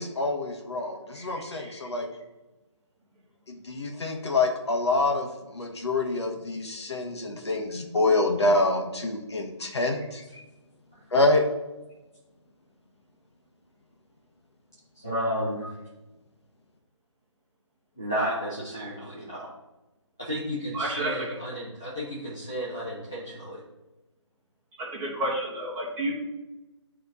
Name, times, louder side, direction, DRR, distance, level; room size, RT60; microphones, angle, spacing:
voice 1, 0.0-2.1 3.6-10.4 11.1-11.4, left 2 dB, 60° left, 2 dB, 1.5 m, -26 dB
voice 2, 1.1-1.7 20.7-21.3 24.8-26.1, right 1 dB, 10° right, -6 dB, 1.6 m, -31 dB
voice 3, 15.0-15.7 18.0-19.5 20.2-23.6, equal, 5° left, -10 dB, 0.3 m, -32 dB
11.0 x 3.7 x 4.0 m, 1.0 s
figure-of-eight pair, 165°, 16 cm